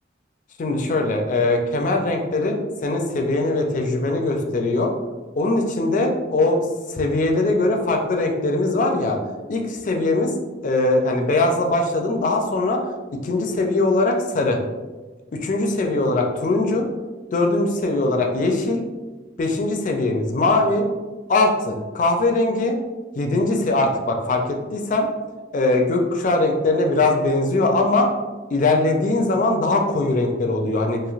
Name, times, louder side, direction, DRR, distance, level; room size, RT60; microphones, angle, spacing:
voice 1, 0.6-4.9 5.4-6.6 6.9-9.2 9.5-10.3 10.6-12.8 13.2-14.6 15.4-16.9 17.3-18.8 19.4-20.9 21.3-22.7 23.2-25.1 25.5-28.1 28.5-31.0, left 2 dB, 40° left, 3 dB, 0.3 m, -21 dB
3.0 x 2.8 x 2.4 m, 1.3 s
head